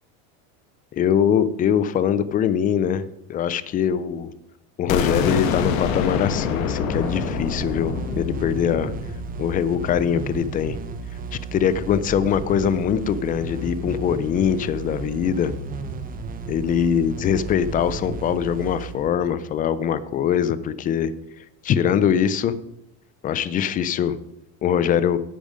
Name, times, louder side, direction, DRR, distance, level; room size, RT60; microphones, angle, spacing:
voice 1, 0.9-4.3 4.8-8.9 9.4-10.8 11.3-15.5 16.5-21.1 21.6-22.6 23.2-24.2 24.6-25.2, left 8 dB, 20° left, 16 dB, 0.4 m, -22 dB
sound 1, 4.9-10.7, left 6 dB, 90° left, 1.7 m, -26 dB
sound 2, 6.9-20.2, right 3 dB, 20° right, 0.9 m, -34 dB
10.5 x 8.8 x 5.1 m, 0.86 s
supercardioid pair, 150°, 38 cm